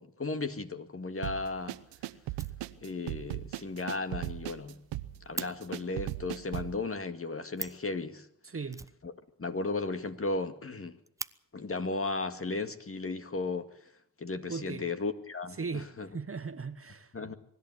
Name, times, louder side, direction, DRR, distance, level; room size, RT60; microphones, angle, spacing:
voice 1, 0.0-1.8 2.8-4.8 5.2-8.3 9.0-9.1 9.4-11.0 11.5-13.9 14.2-16.1 17.1-17.3, left 3 dB, 30° left, 2.1 m, -35 dB
Fire, 1.1-1.2 1.6-1.7 1.9-2.0 2.3-3.1 3.4-3.5 3.9-4.0 4.2-4.3 4.5-5.5 7.2-7.3 7.5-7.9 8.7-9.6 9.9-10.0 10.3-10.4 10.8-11.3 12.3-12.5 13.1-13.7, right 2 dB, 10° right, 0.7 m, -43 dB
wonder break, 1.2-6.8, right 16 dB, 85° right, 0.9 m, -38 dB
voice 2, 8.4-8.9 14.5-14.8 15.6-17.1, right 4 dB, 30° right, 1.3 m, -38 dB
24.0 x 11.5 x 9.7 m
supercardioid pair, 50°, 42 cm